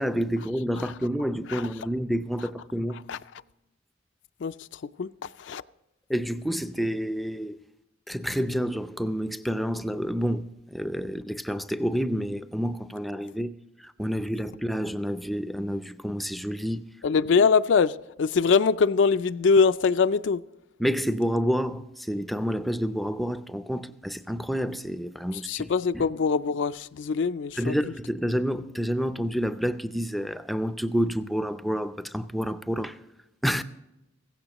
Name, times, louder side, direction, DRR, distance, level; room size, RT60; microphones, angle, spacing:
voice 1, 0.0-3.0 6.1-7.6 8.1-16.9 20.8-26.0 27.6-33.0 33.4-33.6, equal, ahead, 0.5 m, -29 dB
voice 2, 17.0-20.4 25.3-27.7, left 5 dB, 65° left, 0.4 m, -23 dB
16.0 x 15.0 x 3.0 m
head